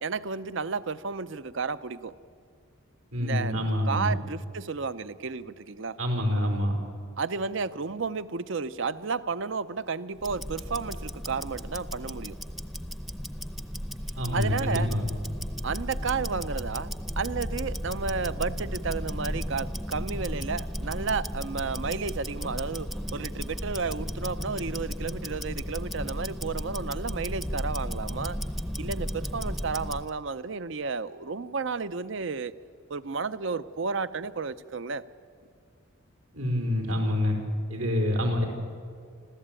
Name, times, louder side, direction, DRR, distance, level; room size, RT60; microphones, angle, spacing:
voice 1, 0.0-2.1 3.2-3.5 3.9-6.0 7.2-12.4 14.3-14.9 15.6-16.9 17.2-28.4 28.8-32.5 32.9-35.0, right 4 dB, 60° right, 14 dB, 0.6 m, -32 dB
voice 2, 3.1-4.1 6.0-6.7 14.2-15.0 36.3-37.3 37.7-38.5, left 1 dB, 90° right, 1 dB, 4.6 m, -26 dB
Tick-tock, 10.2-30.1, equal, ahead, 0.7 m, -34 dB
26.0 x 14.5 x 9.0 m, 2.1 s
head